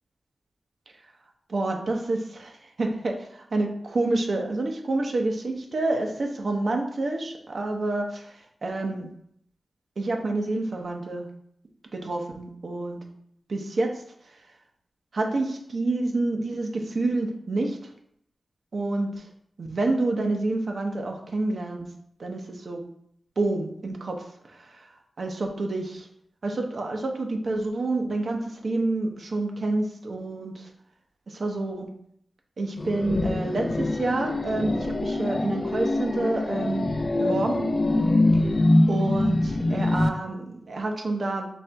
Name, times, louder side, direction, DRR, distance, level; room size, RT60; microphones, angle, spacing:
voice 1, 1.5-9.1 10.0-11.3 11.9-13.0 13.5-14.0 15.1-17.8 18.7-19.3 19.6-21.9 22.2-22.8 23.4-24.9 25.2-26.1 26.4-30.7 31.3-31.9 32.6-37.7 38.3-38.5 38.9-41.5, right 2 dB, 65° right, 2 dB, 0.8 m, -28 dB
sound 1, 32.8-40.1, left 2 dB, 40° left, 0.4 m, -24 dB
4.3 x 3.3 x 3.4 m, 0.69 s
wide cardioid pair, 70°, 0 cm